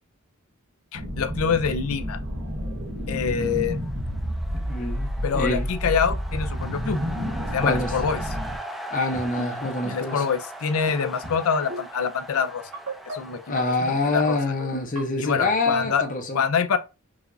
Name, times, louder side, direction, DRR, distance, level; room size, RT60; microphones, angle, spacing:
voice 1, 0.9-2.2 3.1-3.8 5.2-7.0 7.5-8.2 9.9-12.6 13.1-13.6 14.1-14.4 15.2-16.1 16.3-16.8, left 6 dB, 75° left, 0.5 m, -25 dB
sound 1, 0.9-8.6, equal, 60° right, 0.9 m, -30 dB
sound 2, 3.0-15.0, right 1 dB, ahead, 0.5 m, -40 dB
voice 2, 4.6-5.7 7.6-7.9 8.9-10.2 13.5-16.4, left 2 dB, 40° left, 0.8 m, -26 dB
sound 3, 9.0-9.5 9.8-10.1 10.9-11.4 11.7-12.0 12.7-13.1 13.6-13.9 14.6-15.0 15.4-15.8, right 1 dB, 75° right, 1.8 m, -35 dB
4.8 x 2.4 x 2.6 m
head